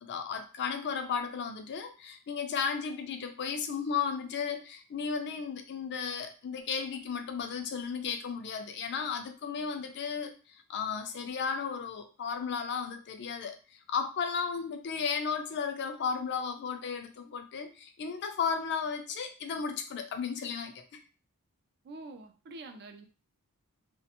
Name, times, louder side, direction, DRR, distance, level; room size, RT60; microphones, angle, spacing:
voice 1, 0.0-21.0, left 6 dB, 50° left, 7 dB, 0.4 m, -34 dB
voice 2, 21.8-23.1, right 2 dB, 45° right, 5 dB, 0.4 m, -46 dB
2.4 x 2.1 x 2.8 m, 0.34 s
head